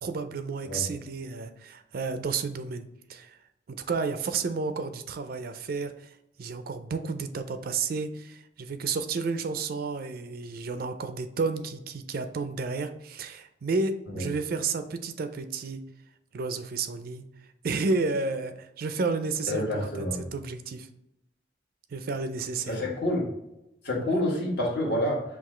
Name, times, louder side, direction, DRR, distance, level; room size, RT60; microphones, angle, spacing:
voice 1, 0.0-3.4 3.7-5.9 6.4-15.8 16.3-17.3 17.6-20.9 21.9-22.8, right 4 dB, 55° right, 9 dB, 0.4 m, -31 dB
voice 2, 19.5-20.2 22.7-23.3 23.8-25.2, left 1 dB, 60° left, -3 dB, 1.5 m, -28 dB
5.8 x 2.4 x 3.1 m, 0.88 s
head